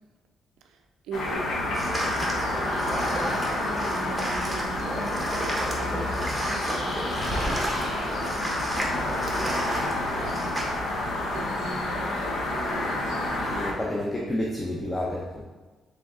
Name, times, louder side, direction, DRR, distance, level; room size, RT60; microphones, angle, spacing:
voice 1, 0.6-2.2 3.3-13.4 13.7-13.8, right 4 dB, 85° right, 5 dB, 0.3 m, -41 dB
sound 1, 1.1-13.7, left 1 dB, 80° left, 0.7 m, -29 dB
sound 2, 1.7-10.7, right 1 dB, 5° right, 0.9 m, -32 dB
sound 3, 2.0-9.8, left 1 dB, 45° left, 1.0 m, -42 dB
voice 2, 13.5-15.4, left 1 dB, 15° left, -3 dB, 0.6 m, -30 dB
3.6 x 3.2 x 3.6 m, 1.2 s
cardioid pair, 90°, 0 cm